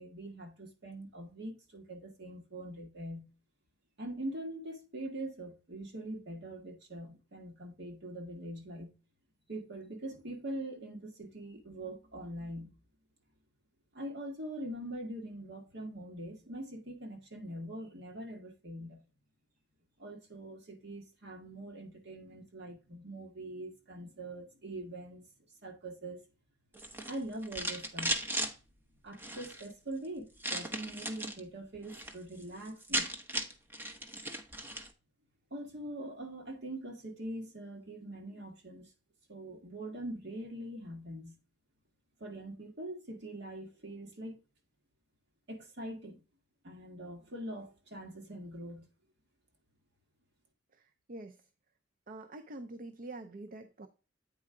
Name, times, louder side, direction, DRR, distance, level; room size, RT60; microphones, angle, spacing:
voice 1, 0.0-3.3 4.0-8.9 9.5-12.7 13.9-19.0 20.0-25.2 25.6-26.2 27.1-28.2 29.0-33.1 35.5-38.9 39.3-41.4 42.2-44.4 45.5-46.2 46.6-48.9, right 1 dB, 60° right, 1.7 m, -43 dB
sound 1, 26.7-28.5 29.1-29.7 30.4-31.4 31.7-32.1 32.4-32.5 32.7-34.9, right 1 dB, 10° right, 0.9 m, -36 dB
voice 2, 50.7-51.4 52.1-53.9, right 2 dB, 45° right, 0.6 m, -46 dB
8.6 x 4.7 x 3.7 m
head